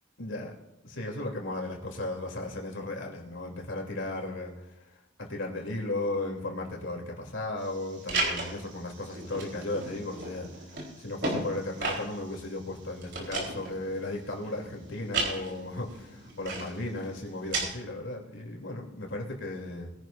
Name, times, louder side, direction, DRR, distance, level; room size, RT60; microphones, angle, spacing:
voice 1, 0.2-0.6 0.8-4.7 5.2-19.9, left 2 dB, 80° left, 1 dB, 3.1 m, -35 dB
sound 1, 7.6-17.6, right 3 dB, 60° right, 3.9 m, -36 dB
21.0 x 11.0 x 2.6 m, 0.96 s
head